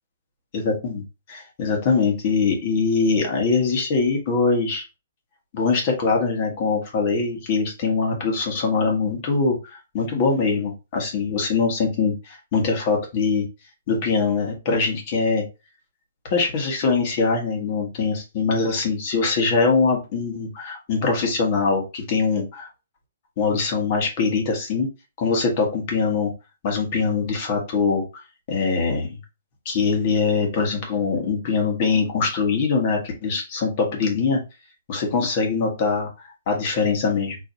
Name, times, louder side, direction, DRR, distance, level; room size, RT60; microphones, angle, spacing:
voice 1, 0.5-1.0 1.3-4.8 5.5-9.6 9.9-13.4 13.9-15.4 16.3-22.7 23.4-24.9 25.2-26.3 26.6-28.0 28.5-29.1 29.6-34.4 34.9-36.1 36.5-37.4, left 4 dB, 35° left, 1 dB, 1.6 m, -22 dB
4.7 x 3.1 x 2.8 m, 0.28 s
hypercardioid pair, 160°, 0 cm